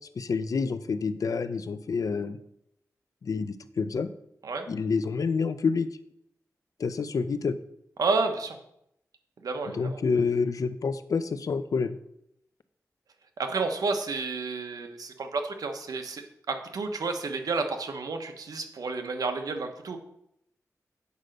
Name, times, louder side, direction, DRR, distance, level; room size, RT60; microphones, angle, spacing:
voice 1, 0.2-2.4 3.2-4.1 4.7-5.9 6.8-7.6 9.7-12.0, left 5 dB, 70° left, 12 dB, 0.6 m, -28 dB
voice 2, 8.0-8.6 9.4-10.0 13.4-20.0, right 4 dB, 90° right, 5 dB, 1.1 m, -31 dB
8.2 x 5.1 x 6.6 m, 0.78 s
wide cardioid pair, 90°, 6 cm